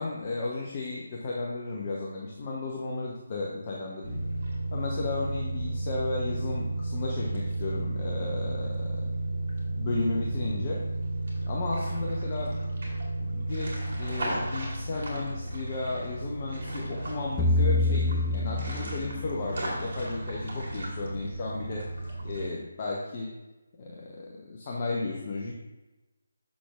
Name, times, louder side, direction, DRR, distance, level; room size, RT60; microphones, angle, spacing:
voice 1, 0.0-4.2 4.7-9.1 9.8-10.8 11.4-12.6 13.2-21.9 22.2-23.3 23.8-25.5, left 3 dB, 35° left, -3 dB, 0.8 m, -34 dB
sound 1, 4.0-22.5, right 2 dB, 50° right, 2.0 m, -33 dB
sound 2, 17.4-19.6, left 2 dB, 10° left, 0.4 m, -26 dB
7.6 x 6.1 x 2.4 m, 1.1 s
figure-of-eight pair, 150°, 0 cm